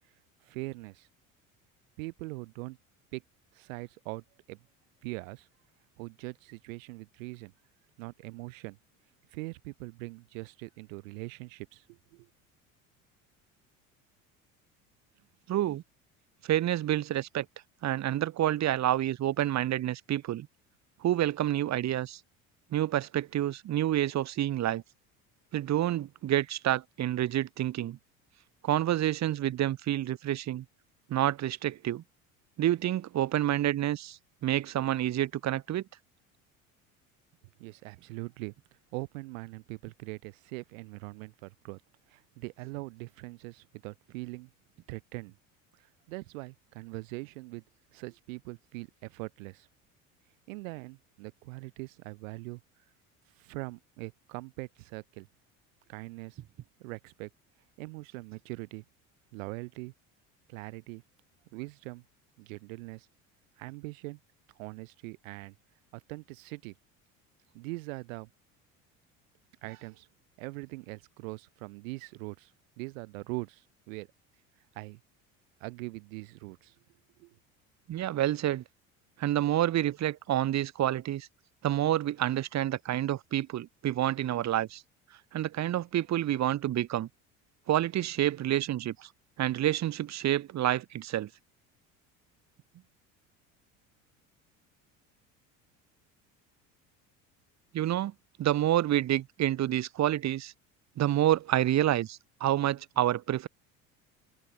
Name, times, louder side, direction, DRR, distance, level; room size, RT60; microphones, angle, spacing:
voice 1, 0.4-1.1 2.0-2.8 3.1-3.2 3.5-4.6 5.0-5.5 6.0-7.5 8.0-8.8 9.3-12.3 37.6-38.5 38.9-41.8 42.1-44.5 44.9-45.3 45.8-47.6 47.9-49.7 50.5-52.6 53.4-55.3 55.9-56.4 56.8-57.3 57.8-58.8 59.3-59.9 60.5-61.0 61.5-62.0 62.4-63.1 63.6-64.2 64.6-65.5 65.9-66.7 67.5-68.3 69.6-70.1 70.4-72.5 72.8-74.1 74.7-75.0 75.6-76.7 77.2-77.3, right 25 dB, 75° right, 0.8 m, -42 dB
voice 2, 15.5-15.8 16.4-17.5 17.8-20.5 21.0-22.2 22.7-24.8 25.5-28.0 28.6-30.6 31.1-32.0 32.6-35.8 77.9-78.6 79.2-81.3 81.6-84.8 85.3-87.1 87.7-89.1 89.4-91.3 97.7-98.1 98.4-100.5 101.0-103.5, right 13 dB, 40° right, 1.1 m, -28 dB
hypercardioid pair, 70°, 40 cm